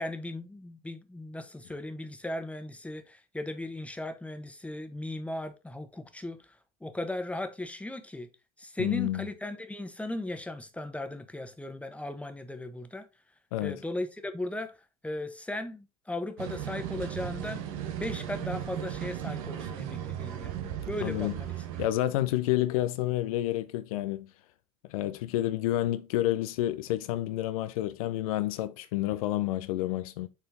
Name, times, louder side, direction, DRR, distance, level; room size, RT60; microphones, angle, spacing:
voice 1, 0.0-8.3 8.6-13.1 13.6-14.7 15.0-17.7 18.0-20.5 20.9-21.5, left 1 dB, 5° left, 1.3 m, -37 dB
voice 2, 8.8-9.3 13.5-13.8 20.6-21.4 21.8-24.3 24.9-30.3, left 14 dB, 75° left, 0.5 m, -29 dB
sound 1, 16.4-21.9, right 11 dB, 75° right, 1.1 m, -36 dB
7.1 x 4.3 x 3.8 m
hypercardioid pair, 65°, 18 cm